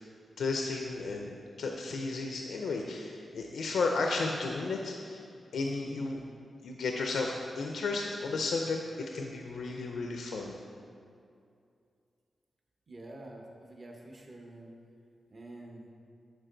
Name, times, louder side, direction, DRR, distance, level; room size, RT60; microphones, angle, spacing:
voice 1, 0.4-5.2 5.5-6.2 6.6-10.5, left 3 dB, 90° left, 1 dB, 0.5 m, -33 dB
voice 2, 12.9-14.7 15.3-15.9, right 1 dB, 40° right, 1 dB, 0.9 m, -47 dB
11.0 x 4.6 x 3.8 m, 2.5 s
wide cardioid pair, 130°, 0 cm